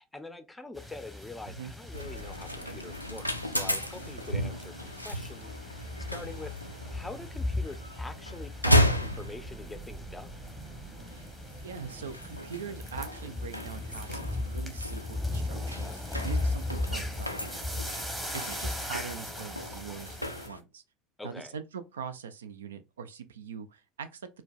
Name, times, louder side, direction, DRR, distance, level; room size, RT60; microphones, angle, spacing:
voice 1, 0.0-6.6 6.9-10.3 21.2-21.6, left 2 dB, 10° left, 0.5 m, -44 dB
sound 1, 0.8-20.5, left 2 dB, 10° right, 1.0 m, -37 dB
sound 2, 1.9-20.6, equal, 90° left, 0.3 m, -34 dB
sound 3, 8.7-15.8, right 4 dB, 35° right, 1.6 m, -49 dB
voice 2, 11.6-18.0 18.3-20.8 21.2-24.2, right 6 dB, 70° right, 0.3 m, -42 dB
4.4 x 2.2 x 2.3 m
figure-of-eight pair, 70°, 0 cm